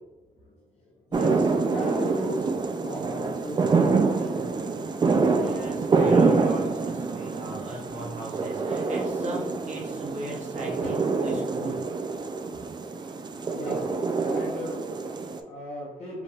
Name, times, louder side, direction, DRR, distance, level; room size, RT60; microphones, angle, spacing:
voice 1, 0.3-3.7 4.1-4.9 12.6-16.2, equal, 50° left, -6 dB, 1.0 m, -38 dB
sound 1, 1.1-15.4, right 4 dB, 30° right, 0.3 m, -26 dB
voice 2, 5.4-11.8, right 1 dB, 50° right, -3 dB, 0.9 m, -37 dB
5.0 x 3.4 x 2.3 m, 1.1 s
wide cardioid pair, 140°, 15 cm